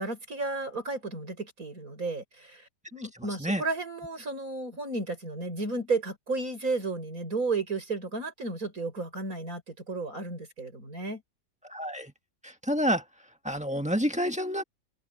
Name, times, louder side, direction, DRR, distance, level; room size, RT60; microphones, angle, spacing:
voice 1, 0.0-11.2, right 3 dB, 50° right, 5.9 m, -33 dB
voice 2, 11.6-12.1 12.4-13.0 13.4-14.6, equal, 5° right, 1.4 m, -28 dB
omnidirectional pair, 1.9 m